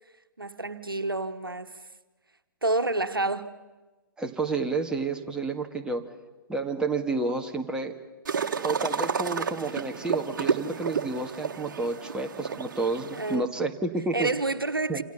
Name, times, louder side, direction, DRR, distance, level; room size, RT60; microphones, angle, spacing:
voice 1, 0.4-1.7 2.6-3.5 13.1-13.5 14.1-15.0, right 2 dB, 85° right, 1.3 m, -28 dB
voice 2, 4.2-6.1 6.5-7.9 8.6-14.3 14.9-15.0, right 3 dB, 5° right, 1.8 m, -30 dB
sound 1, 8.2-13.3, right 6 dB, 60° right, 1.5 m, -31 dB
28.0 x 27.0 x 5.7 m
figure-of-eight pair, 120°, 12 cm